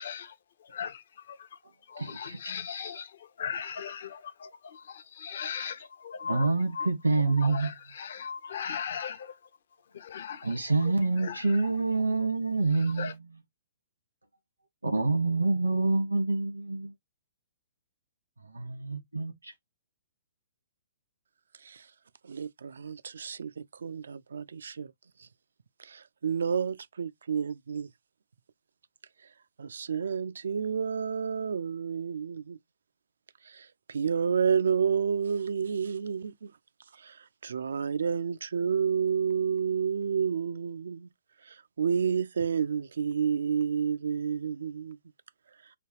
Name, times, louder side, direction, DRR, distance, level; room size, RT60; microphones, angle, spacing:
voice 1, 0.0-9.4 9.9-11.7 12.7-13.1, left 7 dB, 55° left, 0.7 m, -39 dB
voice 2, 2.0-2.4 2.7-2.8 6.3-7.7 10.4-13.1 14.8-16.9 18.5-19.5, right 3 dB, 85° right, 1.3 m, -27 dB
voice 3, 22.2-24.9 25.2-25.3 25.8-27.9 29.6-32.6 33.5-36.5 37.0-41.1 41.5-45.0, right 7 dB, 65° right, 0.3 m, -30 dB
5.0 x 2.3 x 3.0 m
figure-of-eight pair, 120°, 0 cm